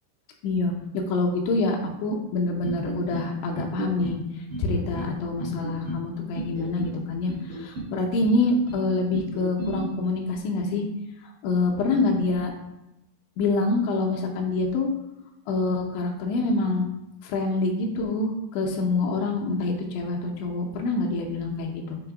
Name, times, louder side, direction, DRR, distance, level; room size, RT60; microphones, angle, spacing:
voice 1, 0.4-4.2 4.6-10.8 11.2-12.5 13.4-14.9 15.5-16.9 17.2-22.0, left 3 dB, 80° left, 0 dB, 2.9 m, -26 dB
sound 1, 2.6-3.3 3.5-4.2 4.5-5.1 5.4-6.0 6.3-7.0 7.3-7.9 8.2-8.8 9.1-9.8, right 3 dB, 80° right, 1.1 m, -33 dB
8.7 x 2.9 x 4.8 m, 0.92 s
omnidirectional pair, 5.6 m